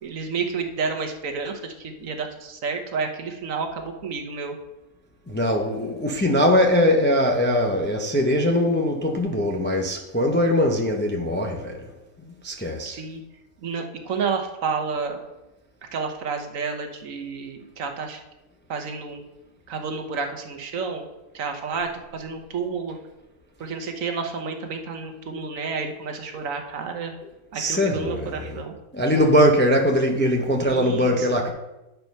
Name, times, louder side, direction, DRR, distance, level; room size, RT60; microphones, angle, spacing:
voice 1, 0.0-4.6 10.7-10.8 12.9-13.2 13.6-15.2 15.9-18.2 18.7-19.2 19.7-21.0 21.3-23.0 23.6-27.1 27.5-28.7 30.7-31.3, right 5 dB, 70° right, 1.3 m, -30 dB
voice 2, 5.3-11.8 12.4-13.0 27.6-28.3 28.9-31.5, equal, 10° left, 0.5 m, -21 dB
9.5 x 4.5 x 5.3 m
omnidirectional pair, 1.5 m